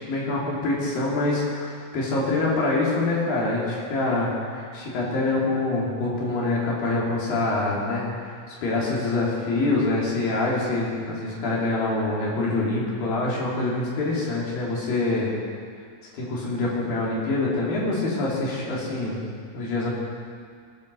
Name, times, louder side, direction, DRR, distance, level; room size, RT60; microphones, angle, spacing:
voice 1, 0.1-15.3 16.1-19.2 19.5-19.9, left 2 dB, 80° left, -5 dB, 4.7 m, -25 dB
18.0 x 8.5 x 6.8 m, 2.1 s
omnidirectional pair, 4.0 m